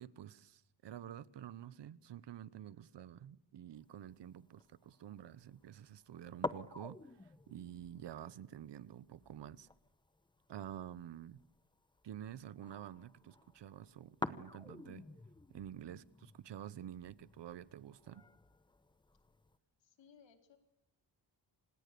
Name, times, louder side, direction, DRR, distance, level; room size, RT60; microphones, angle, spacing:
voice 1, 0.0-9.7 10.5-11.4 12.0-15.1 15.5-16.0 16.4-18.2, right 10 dB, 75° right, 1.2 m, -49 dB
sound 1, 3.7-19.6, left 2 dB, 10° left, 1.0 m, -50 dB
voice 2, 19.8-20.6, left 6 dB, 85° left, 4.6 m, -64 dB
29.5 x 26.5 x 7.0 m
wide cardioid pair, 175°, 43 cm